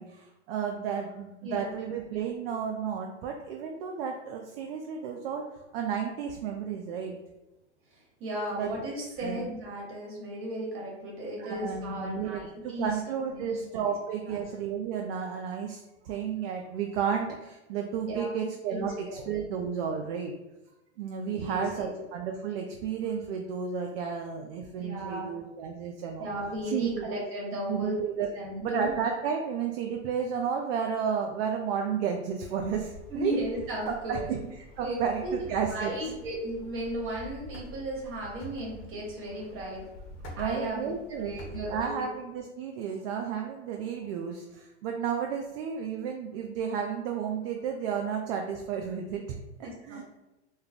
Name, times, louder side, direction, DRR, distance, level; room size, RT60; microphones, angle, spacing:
voice 1, 0.0-5.5 5.7-7.2 8.5-8.7 9.2-9.4 11.4-20.3 21.0-26.3 26.7-27.1 27.7-28.3 28.6-33.4 33.8-34.4 34.8-35.9 40.4-50.0, right 7 dB, 55° right, 2 dB, 0.5 m, -32 dB
voice 2, 1.4-1.7 7.9-12.9 13.3-13.9 14.2-14.4 18.1-19.2 21.3-22.0 24.8-25.3 26.2-28.0 28.3-28.9 33.1-34.3 34.8-35.3 35.7-39.8 40.2-42.0 49.9-50.0, equal, 35° right, -2 dB, 1.2 m, -36 dB
sound 1, 32.6-41.9, left 1 dB, 35° left, 0.7 m, -46 dB
2.3 x 2.2 x 3.4 m, 0.99 s
hypercardioid pair, 105°, 35 cm